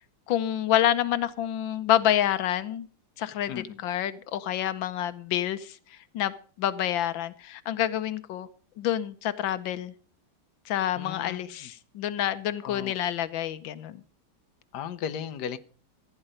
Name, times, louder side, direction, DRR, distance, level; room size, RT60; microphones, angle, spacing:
voice 1, 0.3-2.9 3.2-8.5 8.8-9.9 10.6-14.0, left 11 dB, 85° left, 1.5 m, -28 dB
voice 2, 3.5-3.8 11.0-11.4 12.6-12.9 14.7-15.6, left 8 dB, 65° left, 1.4 m, -35 dB
15.5 x 10.0 x 5.1 m
omnidirectional pair, 2.1 m